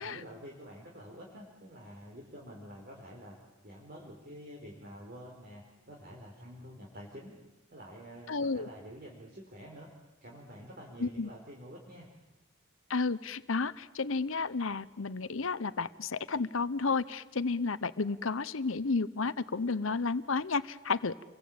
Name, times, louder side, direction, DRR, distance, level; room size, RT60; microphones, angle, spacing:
voice 1, 0.0-3.4 3.6-7.4 7.7-9.9 10.2-12.1, equal, 45° right, -1 dB, 4.5 m, -48 dB
voice 2, 8.3-8.7 11.0-11.3 12.9-21.1, left 4 dB, 70° left, 15 dB, 0.9 m, -32 dB
29.0 x 23.0 x 8.8 m, 1.0 s
head